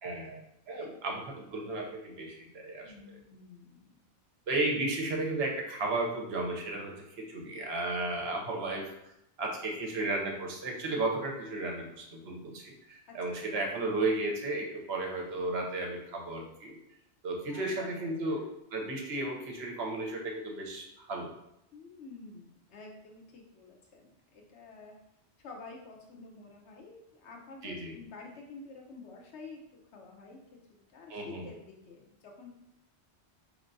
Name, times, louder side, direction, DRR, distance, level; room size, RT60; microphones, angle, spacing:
voice 1, 0.0-2.9 4.5-8.9 9.4-16.8 17.2-21.3 27.6-27.9 31.1-31.4, right 2 dB, 65° right, 1 dB, 1.0 m, -34 dB
voice 2, 2.8-3.9 13.1-13.7 17.5-18.5 21.7-25.0 25.4-32.6, left 3 dB, 75° left, 0 dB, 1.0 m, -50 dB
4.4 x 3.2 x 2.6 m, 0.80 s
omnidirectional pair, 1.2 m